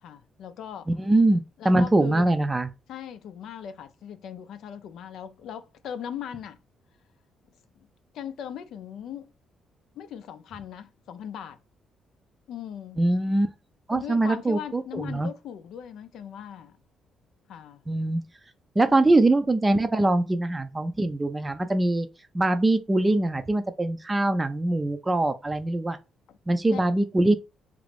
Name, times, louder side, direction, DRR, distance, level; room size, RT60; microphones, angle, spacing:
voice 1, 0.0-0.9 1.6-2.3 2.9-6.6 7.8-7.9 8.1-9.3 9.9-11.6 12.5-13.0 13.9-16.8 17.5-17.8 26.3-26.4 26.7-26.8, left 9 dB, 75° left, 0.4 m, -39 dB
voice 2, 1.0-2.7 13.0-13.5 13.9-15.3 17.9-18.2 18.8-22.1 22.3-26.0 26.5-27.4, right 2 dB, 20° right, 0.4 m, -23 dB
2.9 x 2.5 x 3.3 m
cardioid pair, 90°, 0 cm